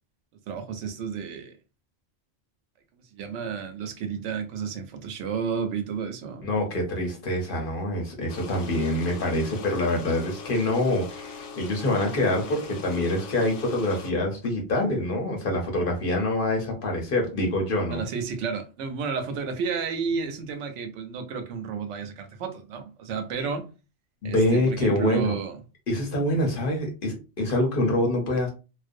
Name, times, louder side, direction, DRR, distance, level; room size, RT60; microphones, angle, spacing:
voice 1, 0.5-1.5 3.1-6.5 17.9-23.6 24.2-25.6, right 6 dB, 80° right, 0.9 m, -31 dB
voice 2, 6.4-18.0 23.4-23.5 24.2-25.3 25.9-28.5, left 1 dB, 55° left, 0.8 m, -25 dB
sound 1, 8.3-14.1, left 4 dB, 90° left, 0.9 m, -41 dB
2.5 x 2.0 x 2.5 m
omnidirectional pair, 1.2 m